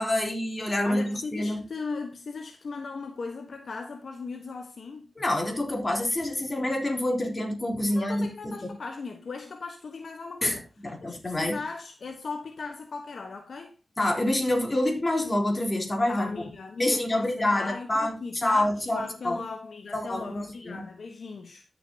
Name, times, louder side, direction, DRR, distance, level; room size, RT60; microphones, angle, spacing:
voice 1, 0.0-1.6 5.2-8.7 10.4-10.6 10.8-11.6 14.0-16.3 16.8-19.4 19.9-20.8, left 1 dB, 40° left, 3.7 m, -27 dB
voice 2, 0.8-5.1 7.9-10.6 11.0-13.8 16.1-21.6, left 4 dB, 80° left, 1.2 m, -38 dB
13.0 x 6.9 x 2.8 m
cardioid pair, 50°, 0 cm